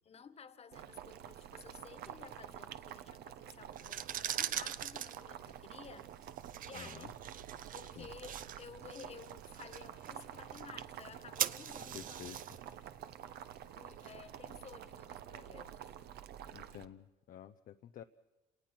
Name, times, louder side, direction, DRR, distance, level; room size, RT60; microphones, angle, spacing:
voice 1, 0.0-6.1 6.6-7.2 7.7-12.4 13.7-15.9, left 6 dB, 35° left, 12 dB, 1.6 m, -54 dB
Boiling, 0.7-16.9, right 10 dB, 70° right, 1.1 m, -49 dB
sound 1, 3.7-14.5, right 10 dB, 55° right, 0.8 m, -43 dB
voice 2, 6.7-7.1 7.9-8.1 11.9-12.4 16.5-18.0, left 10 dB, 55° left, 8 dB, 0.7 m, -50 dB
Trumpet, 9.4-14.8, left 10 dB, 85° left, 2.5 m, -72 dB
29.5 x 19.0 x 6.1 m, 1.2 s
cardioid pair, 110°, 17 cm